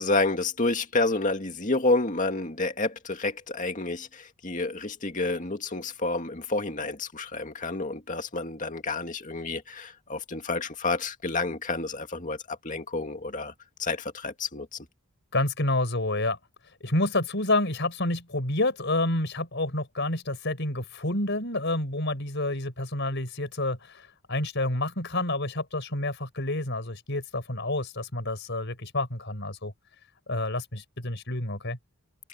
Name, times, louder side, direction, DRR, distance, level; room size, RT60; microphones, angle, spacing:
voice 1, 0.0-13.5 13.8-14.7, left 3 dB, 35° left, 2.2 m, -29 dB
voice 2, 15.3-16.4 16.8-29.7 30.3-31.8, left 2 dB, 55° left, 5.3 m, -29 dB
head